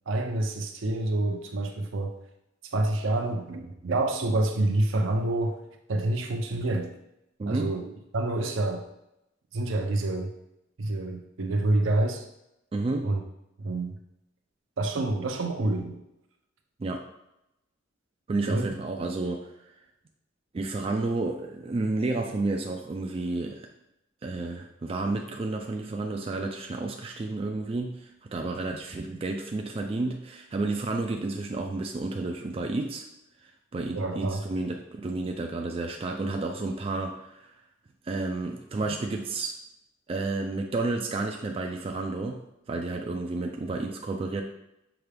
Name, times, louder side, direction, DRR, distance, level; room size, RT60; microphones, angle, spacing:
voice 1, 0.1-2.1 2.6-5.6 5.9-6.9 7.5-8.8 9.5-10.3 10.8-12.3 13.0-13.2 13.6-14.0 14.8-16.0 18.5-18.7 33.9-34.4, right 2 dB, 75° right, 4 dB, 0.6 m, -27 dB
voice 2, 7.4-7.7 12.7-13.1 16.8-17.0 18.3-19.5 20.5-23.7 24.2-33.0 33.7-37.5 38.0-39.6 40.1-44.4, right 2 dB, 30° right, 2 dB, 0.3 m, -31 dB
5.8 x 2.3 x 3.3 m, 0.85 s
head